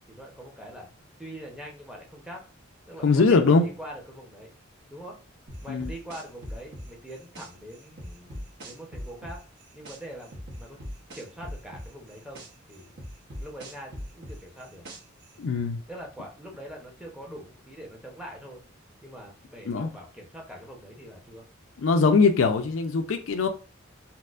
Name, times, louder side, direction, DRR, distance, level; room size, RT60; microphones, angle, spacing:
voice 1, 0.1-0.9 1.2-2.4 2.9-4.5 4.9-5.2 5.6-9.4 9.7-10.8 11.1-12.9 13.4-14.8 15.9-18.6 19.0-21.4, equal, 5° right, 0.7 m, -43 dB
voice 2, 3.0-3.6 5.7-5.9 15.4-15.8 19.7-19.9 21.8-23.5, left 4 dB, 70° left, 0.4 m, -21 dB
sound 1, 5.5-7.5 8.0-10.0 10.3-12.5 13.0-15.2, equal, 55° right, 1.0 m, -39 dB
4.2 x 2.1 x 2.5 m
head